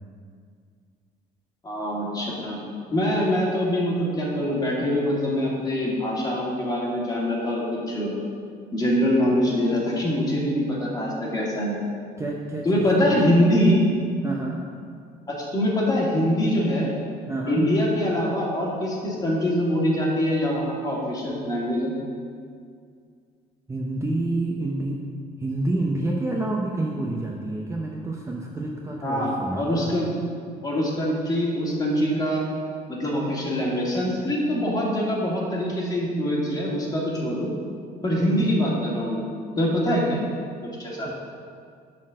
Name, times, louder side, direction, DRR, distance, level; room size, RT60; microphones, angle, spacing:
voice 1, 1.6-2.6 2.9-8.1 8.7-11.8 12.6-13.8 15.3-16.9 17.5-21.9 29.0-30.1 30.6-32.4 32.9-37.5 38.0-39.2 39.6-40.2 40.6-41.1, equal, 20° left, -4 dB, 2.1 m, -24 dB
voice 2, 12.2-13.2 14.2-14.6 17.3-17.6 23.7-25.0 25.4-30.0 41.0-41.1, right 2 dB, 15° right, -1 dB, 0.7 m, -28 dB
8.3 x 4.3 x 6.4 m, 2.2 s
cardioid pair, 110°, 17 cm